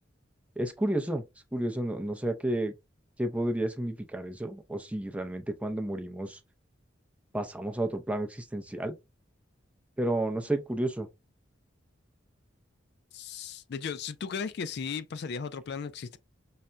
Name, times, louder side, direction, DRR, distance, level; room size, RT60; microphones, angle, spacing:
voice 1, 0.6-1.2 1.5-2.7 3.2-6.4 7.3-9.0 10.0-11.1, right 1 dB, 5° right, 0.5 m, -31 dB
voice 2, 13.1-16.2, left 6 dB, 55° left, 0.3 m, -36 dB
5.5 x 2.1 x 2.4 m
head